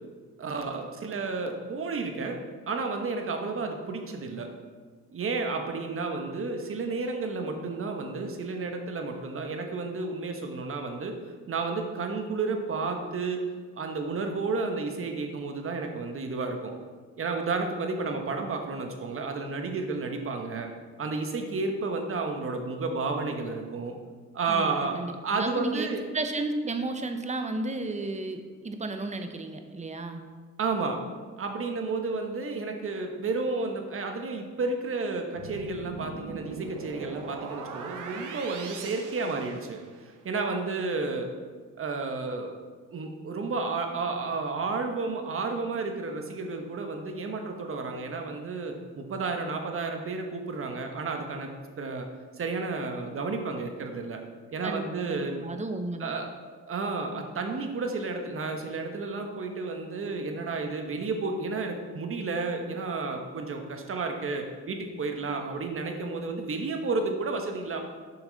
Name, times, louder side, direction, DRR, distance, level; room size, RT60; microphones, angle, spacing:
voice 1, 0.4-4.5 5.1-11.2 11.5-13.4 13.8-16.7 17.2-20.7 21.0-23.9 24.3-25.0 25.2-26.0 30.6-31.0 31.4-41.3 41.8-42.5 42.9-51.5 51.8-52.1 52.4-54.2 54.5-55.4 56.0-56.3 56.7-67.8, right 3 dB, 45° right, 4 dB, 1.2 m, -31 dB
voice 2, 24.5-25.9 26.1-30.2 54.6-56.1, right 2 dB, 25° right, 6 dB, 0.8 m, -33 dB
sound 1, 35.4-40.1, right 5 dB, 85° right, 0.9 m, -40 dB
7.5 x 5.8 x 4.0 m, 1.5 s
cardioid pair, 90°, 30 cm